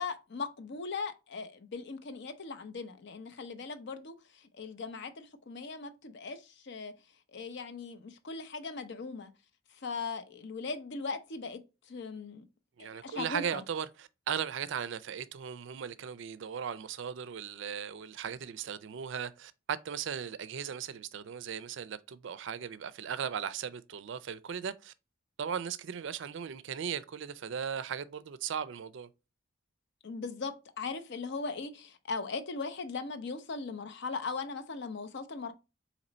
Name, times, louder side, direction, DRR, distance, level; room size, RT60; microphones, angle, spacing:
voice 1, 0.0-6.9 7.3-9.3 9.7-11.6 11.9-12.4 12.8-13.6 30.0-35.5, left 4 dB, 60° left, 0.5 m, -39 dB
voice 2, 12.8-24.9 25.4-29.1, right 7 dB, 60° right, 0.4 m, -37 dB
4.2 x 2.9 x 3.9 m
head